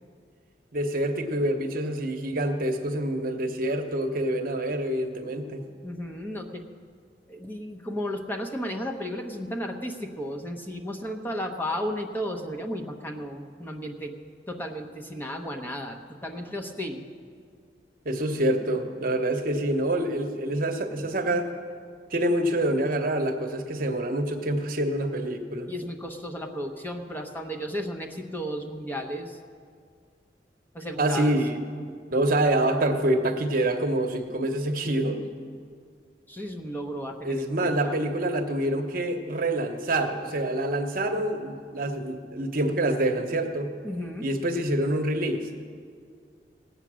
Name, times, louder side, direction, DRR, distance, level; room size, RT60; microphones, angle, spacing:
voice 1, 0.7-5.6 18.0-21.5 22.1-25.7 31.0-31.6 32.1-35.2 37.2-43.7 44.2-45.5, right 1 dB, 55° right, 5 dB, 1.0 m, -26 dB
voice 2, 5.8-6.6 7.3-14.1 14.5-17.1 25.7-29.4 30.7-31.4 36.3-38.0 43.8-44.3, equal, 10° left, 2 dB, 0.9 m, -34 dB
18.5 x 8.2 x 6.2 m, 2.1 s
head